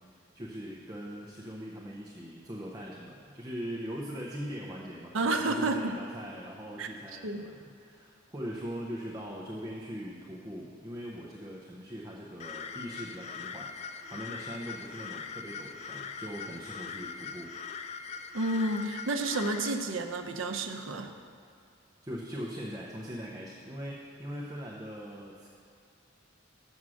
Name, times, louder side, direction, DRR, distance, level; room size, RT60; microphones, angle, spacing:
voice 1, 0.3-13.7 14.1-17.5 22.0-25.5, equal, 20° right, -3 dB, 0.7 m, -41 dB
voice 2, 5.1-6.0 6.8-6.9 7.2-7.4 18.3-21.1, right 2 dB, 70° right, 5 dB, 0.7 m, -30 dB
sound 1, 12.4-19.7, left 5 dB, 35° left, 0.3 m, -41 dB
7.2 x 6.2 x 6.3 m, 2.5 s
head